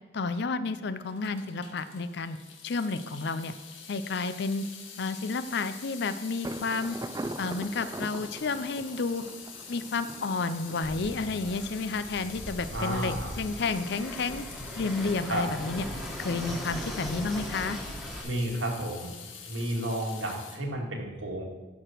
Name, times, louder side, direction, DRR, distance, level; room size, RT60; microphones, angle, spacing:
voice 1, 0.1-2.4 2.6-3.5 3.9-4.7 5.0-7.0 7.4-9.2 9.7-14.4 14.8-15.8 16.2-17.8, left 4 dB, 60° left, 12 dB, 0.5 m, -31 dB
Water tap faucet / Sink (filling or washing) / Drip, 1.0-20.6, left 6 dB, 85° left, 1.6 m, -46 dB
Thunder, 6.4-12.1, right 2 dB, 20° right, 0.3 m, -41 dB
Fixed-wing aircraft airplane, 10.8-18.2, equal, ahead, 1.5 m, -39 dB
voice 2, 12.7-13.3 15.3-15.5 18.2-19.1 19.4-21.4, right 1 dB, 80° right, -1 dB, 2.3 m, -31 dB
12.5 x 5.0 x 5.9 m, 1.2 s
head